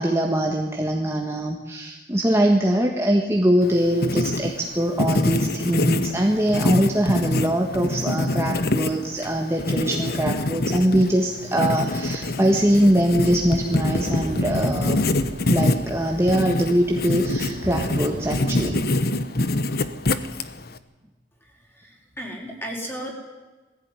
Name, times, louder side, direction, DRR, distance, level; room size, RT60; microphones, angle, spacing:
voice 1, 0.0-15.0 15.5-18.8, right 1 dB, 15° right, 1 dB, 1.5 m, -22 dB
Writing, 3.6-20.8, left 2 dB, 55° left, 1.1 m, -25 dB
sound 1, 13.1-18.9, right 1 dB, 45° right, 1.8 m, -34 dB
voice 2, 21.4-23.1, equal, 10° left, 0 dB, 4.7 m, -35 dB
20.5 x 15.5 x 9.9 m, 1.2 s
head